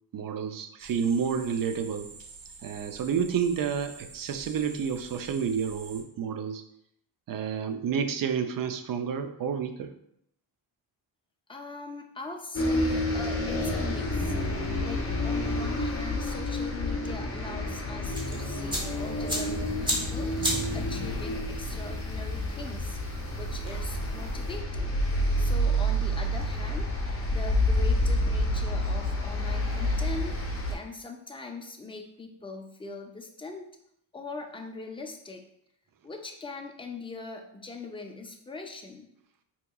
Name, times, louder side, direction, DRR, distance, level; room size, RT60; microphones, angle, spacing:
voice 1, 0.1-2.1 2.6-6.6 7.3-9.9, right 7 dB, 45° right, 8 dB, 0.4 m, -30 dB
sound 1, 0.8-6.0, right 4 dB, 65° right, 0.8 m, -47 dB
voice 2, 11.5-14.4 14.8-23.0 23.3-33.7 34.1-35.4 36.0-39.1, left 3 dB, 10° left, 3 dB, 0.4 m, -41 dB
sound 2, 12.5-30.7, left 1 dB, 30° left, 0.8 m, -29 dB
sound 3, 18.1-24.6, equal, 10° right, 1.0 m, -36 dB
4.5 x 2.9 x 2.3 m, 0.73 s
cardioid pair, 95°, 48 cm